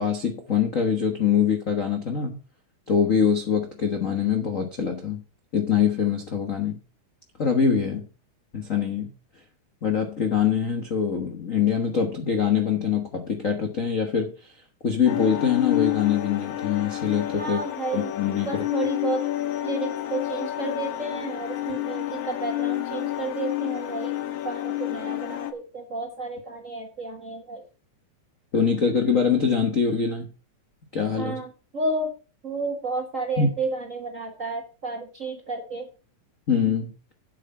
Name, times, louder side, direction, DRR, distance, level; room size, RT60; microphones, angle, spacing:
voice 1, 0.0-2.4 2.9-5.2 5.5-6.8 7.4-8.0 8.5-9.1 9.8-14.5 14.8-17.6 17.9-18.7 28.5-30.3 30.9-31.4 33.4-33.6 36.5-36.9, left 7 dB, 55° left, 5 dB, 0.9 m, -24 dB
sound 1, 15.1-25.5, left 14 dB, 85° left, 2.4 m, -29 dB
voice 2, 17.4-18.1 18.5-19.2 19.6-24.1 24.4-27.6 31.2-31.5 31.7-32.1 32.4-35.9, right 3 dB, 40° right, 2 dB, 1.1 m, -31 dB
8.4 x 7.7 x 5.5 m, 0.36 s
omnidirectional pair, 3.4 m